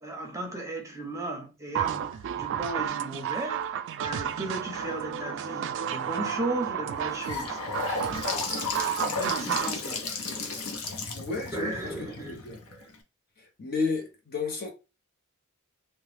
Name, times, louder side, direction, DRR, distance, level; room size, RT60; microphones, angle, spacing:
voice 1, 0.0-3.6 4.0-7.6 9.0-10.0 11.5-12.9, right 2 dB, 15° right, 0.7 m, -35 dB
sound 1, 1.7-9.7, right 9 dB, 60° right, 0.3 m, -32 dB
Gurgling / Sink (filling or washing) / Bathtub (filling or washing), 6.9-13.0, left 4 dB, 80° left, 0.7 m, -33 dB
voice 2, 11.1-12.6 13.6-14.7, left 4 dB, 45° left, 0.9 m, -32 dB
3.0 x 2.2 x 3.2 m
head